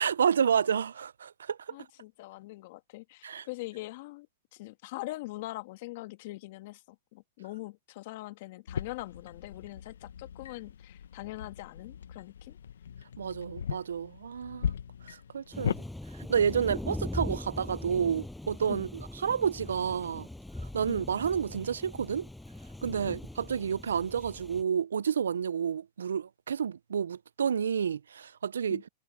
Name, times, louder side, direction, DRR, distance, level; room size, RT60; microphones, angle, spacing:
voice 1, 0.0-1.7 3.2-3.5 13.2-14.7 15.3-15.8 16.3-18.9 19.2-20.3 20.7-22.3 22.8-28.8, right 7 dB, 90° right, 0.3 m, -30 dB
voice 2, 1.7-4.3 4.5-6.8 7.1-12.6 18.7-18.9 20.9-21.1 23.0-23.2 28.7-28.8, left 20 dB, 60° left, 1.8 m, -42 dB
sound 1, 8.7-15.8, left 8 dB, 85° left, 0.8 m, -38 dB
Thunder, 15.5-24.6, left 1 dB, 5° left, 7.2 m, -41 dB
hypercardioid pair, 115°, 0 cm